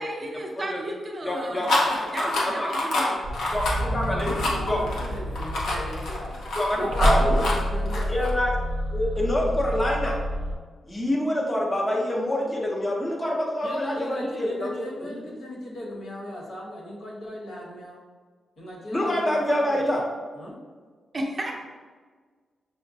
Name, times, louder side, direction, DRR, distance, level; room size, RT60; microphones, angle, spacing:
voice 1, 0.0-3.2 21.1-21.6, right 1 dB, 30° right, 0 dB, 0.5 m, -34 dB
voice 2, 1.2-1.9 2.2-2.7 2.9-3.1 3.5-4.3 4.7-4.8 6.6-7.4 8.1-8.5 8.9-10.2 10.8-15.2 18.9-20.0, left 1 dB, 20° left, -3 dB, 0.6 m, -26 dB
sound 1, 1.6-8.3, left 2 dB, 85° left, 0.7 m, -27 dB
sound 2, 3.2-10.5, equal, 80° right, 0.6 m, -28 dB
voice 3, 3.8-6.4 6.7-8.1 13.6-18.0 18.6-19.8 20.4-20.6, left 1 dB, 65° left, -3 dB, 1.0 m, -37 dB
6.0 x 2.0 x 2.6 m, 1.5 s
wide cardioid pair, 145°, 0 cm